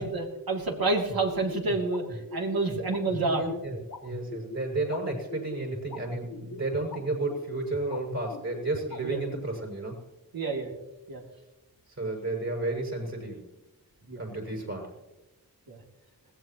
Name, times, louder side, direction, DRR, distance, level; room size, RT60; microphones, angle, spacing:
voice 1, 0.0-3.4 9.0-9.2 10.3-10.7 11.1-11.2 14.1-14.2 15.7-15.8, right 3 dB, 80° right, 0 dB, 3.0 m, -29 dB
sound 1, 1.1-9.6, left 3 dB, 75° left, 1.8 m, -40 dB
voice 2, 3.2-10.0 12.0-13.5 14.2-15.0, right 2 dB, 50° right, 0 dB, 7.0 m, -32 dB
21.0 x 17.5 x 3.1 m, 1.0 s
wide cardioid pair, 80°, 35 cm